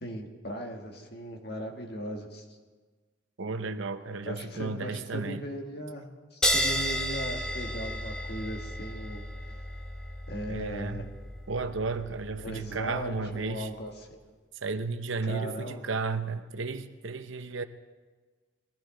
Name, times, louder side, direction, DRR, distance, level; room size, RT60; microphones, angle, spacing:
voice 1, 0.0-2.4 4.3-9.2 10.3-11.1 12.4-14.2 15.2-15.8, equal, 50° left, 1.8 m, -38 dB
voice 2, 3.4-5.4 10.5-11.1 11.5-13.7 14.6-17.6, right 4 dB, 75° right, 0.8 m, -33 dB
sound 1, 6.4-13.4, equal, 5° left, 1.0 m, -33 dB
21.5 x 14.5 x 3.9 m
head